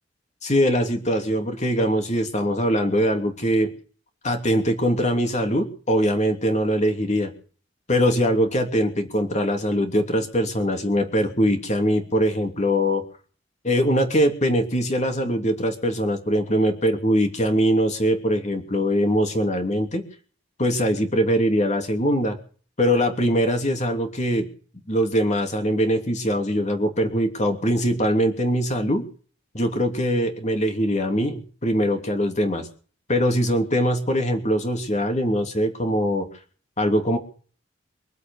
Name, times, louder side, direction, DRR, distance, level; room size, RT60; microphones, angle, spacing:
voice 1, 0.4-3.7 4.2-7.3 7.9-13.0 13.6-20.0 20.6-22.4 22.8-24.5 24.9-29.1 29.5-32.7 33.1-36.3 36.8-37.2, equal, 40° left, 5 dB, 3.0 m, -22 dB
24.0 x 8.3 x 7.1 m, 0.43 s
head